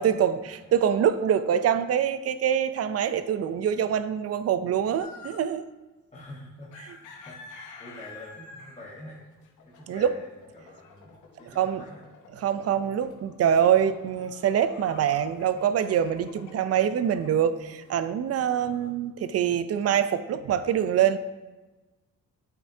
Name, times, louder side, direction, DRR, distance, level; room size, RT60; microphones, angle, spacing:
voice 1, 0.0-5.6 9.9-10.1 11.6-11.8 12.3-21.2, right 9 dB, 55° right, 12 dB, 0.5 m, -25 dB
sound 1, 5.0-5.5 6.6-18.1, left 4 dB, 75° left, 1.0 m, -49 dB
voice 2, 6.1-9.2 9.6-12.0 18.5-18.9, left 1 dB, 20° left, -5 dB, 1.2 m, -46 dB
8.3 x 6.0 x 2.7 m, 1.2 s
cardioid pair, 90°, 30 cm